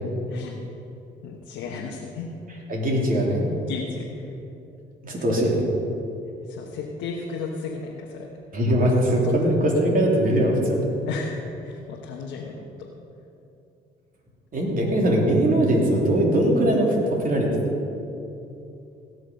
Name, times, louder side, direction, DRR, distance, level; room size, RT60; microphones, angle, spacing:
voice 1, 0.3-0.6 1.2-2.3 3.7-4.3 5.2-5.3 6.5-8.3 9.2-9.3 9.6-9.7 11.1-12.6, left 5 dB, 85° left, -1 dB, 1.2 m, -34 dB
voice 2, 2.7-3.4 5.0-5.6 8.5-10.8 14.5-17.5, right 1 dB, 45° right, -1 dB, 3.1 m, -21 dB
17.5 x 6.4 x 5.3 m, 2.8 s
supercardioid pair, 65°, 19 cm